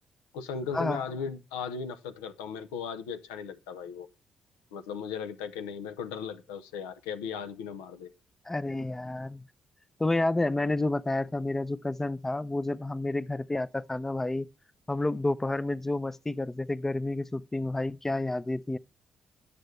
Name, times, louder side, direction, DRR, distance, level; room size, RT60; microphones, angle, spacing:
voice 1, 0.3-4.1 4.7-8.1, left 6 dB, 85° left, 0.6 m, -37 dB
voice 2, 8.5-9.5 10.0-14.5 14.9-18.8, left 2 dB, 15° left, 0.5 m, -30 dB
10.0 x 6.8 x 3.2 m
hypercardioid pair, 50°, 2 cm